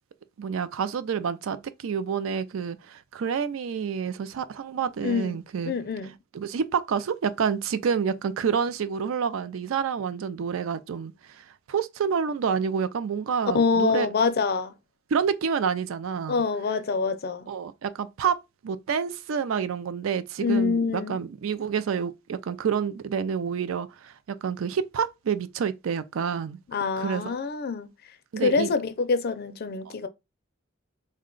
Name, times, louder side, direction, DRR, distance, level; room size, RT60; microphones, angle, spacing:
voice 1, 0.4-5.7 6.3-11.1 11.7-14.1 15.1-16.4 17.5-18.4 18.6-26.6 27.0-27.4 28.3-28.7 29.9-30.0, right 6 dB, 85° right, 0.4 m, -28 dB
voice 2, 5.0-5.4 5.7-6.1 13.5-14.7 16.3-17.5 20.4-21.2 26.7-27.9 28.4-30.1, left 4 dB, 50° left, 0.4 m, -25 dB
3.6 x 2.2 x 3.7 m
head